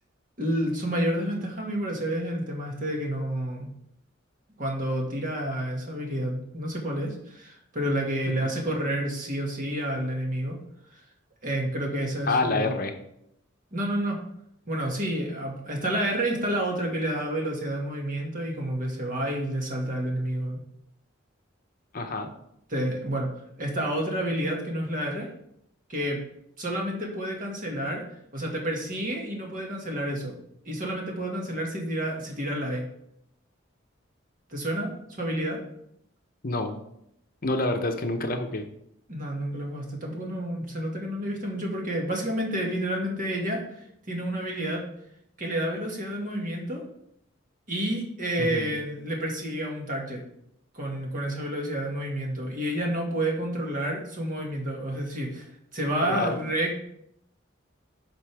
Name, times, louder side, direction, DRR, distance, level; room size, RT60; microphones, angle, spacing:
voice 1, 0.4-3.7 4.6-10.6 10.9-11.0 11.4-12.8 13.7-14.2 14.7-20.6 22.7-23.3 23.6-25.3 25.9-26.2 26.6-28.0 28.3-30.3 30.7-32.9 34.5-35.6 39.1-44.8 45.4-46.8 47.7-50.2 50.7-56.8, right 1 dB, 45° right, -1 dB, 1.9 m, -29 dB
voice 2, 12.3-12.9 21.9-22.3 36.4-36.8 37.4-38.6 48.4-48.7 56.1-56.4, left 2 dB, 45° left, 6 dB, 0.8 m, -27 dB
10.5 x 5.3 x 3.5 m, 0.75 s
head